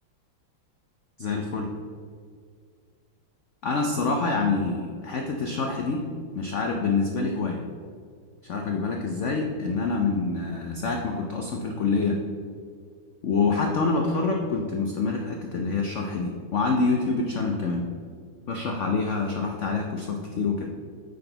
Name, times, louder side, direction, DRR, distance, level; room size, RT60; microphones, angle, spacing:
voice 1, 1.2-1.7 3.6-6.1 6.3-7.6 8.4-12.2 13.2-17.9 18.5-20.6, left 4 dB, 80° left, 2 dB, 0.6 m, -26 dB
9.1 x 6.0 x 3.9 m, 2.1 s
omnidirectional pair, 2.1 m